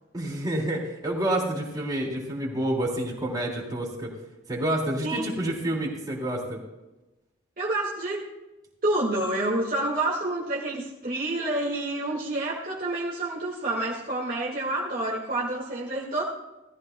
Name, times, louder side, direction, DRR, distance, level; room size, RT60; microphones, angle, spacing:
voice 1, 0.1-4.1 4.5-6.6, right 1 dB, 20° right, -4 dB, 3.4 m, -28 dB
voice 2, 7.6-8.3 8.8-16.2, right 2 dB, 45° right, -4 dB, 2.0 m, -28 dB
18.5 x 14.0 x 2.3 m, 1.0 s
head